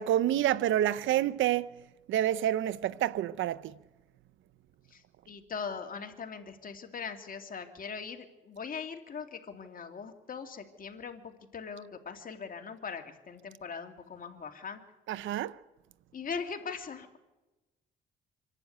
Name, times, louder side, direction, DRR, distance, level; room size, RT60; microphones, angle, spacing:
voice 1, 0.0-1.7 2.1-3.7 15.1-15.5, right 12 dB, 80° right, 0.7 m, -28 dB
voice 2, 5.3-14.8 16.1-17.2, left 5 dB, 45° left, 2.5 m, -40 dB
26.0 x 11.5 x 9.3 m
cardioid pair, 90°, 20 cm